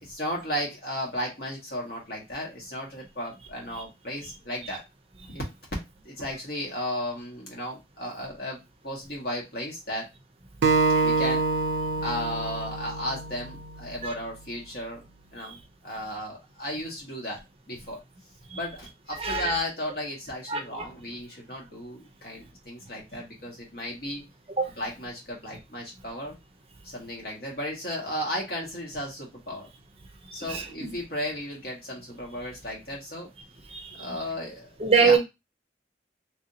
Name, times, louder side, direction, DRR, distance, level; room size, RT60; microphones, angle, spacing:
voice 1, 0.0-4.8 5.2-5.4 6.0-10.1 11.0-11.4 12.0-15.0 15.3-18.0 18.5-24.2 24.8-26.4 26.8-29.7 30.3-33.3 34.0-34.7 35.0-35.2, equal, 55° left, 1.4 m, -34 dB
Acoustic guitar, 10.6-13.9, right 4 dB, 85° right, 0.4 m, -26 dB
voice 2, 30.3-30.9 33.7-34.1 34.8-35.2, right 5 dB, 35° right, 0.5 m, -23 dB
3.4 x 2.6 x 2.7 m
head